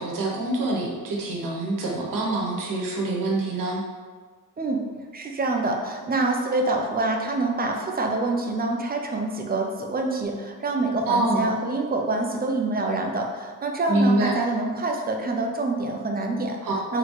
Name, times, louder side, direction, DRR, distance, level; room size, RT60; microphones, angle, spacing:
voice 1, 0.0-3.8 11.1-11.5 13.9-14.4 16.6-17.0, right 2 dB, 75° right, -2 dB, 1.1 m, -25 dB
voice 2, 5.1-16.6 16.9-17.0, right 2 dB, 30° right, 2 dB, 0.5 m, -26 dB
4.0 x 3.2 x 3.2 m, 1.5 s
cardioid pair, 110°, 33 cm